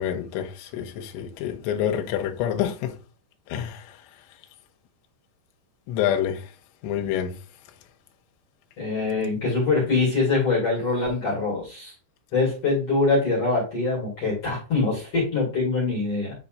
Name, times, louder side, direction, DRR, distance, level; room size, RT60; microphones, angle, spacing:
voice 1, 0.0-3.0 3.5-4.0 5.9-6.5 6.8-7.3, left 10 dB, 85° left, 3.0 m, -27 dB
voice 2, 8.8-11.9 12.3-16.4, left 3 dB, 40° left, 2.9 m, -24 dB
9.9 x 4.2 x 2.5 m
omnidirectional pair, 5.3 m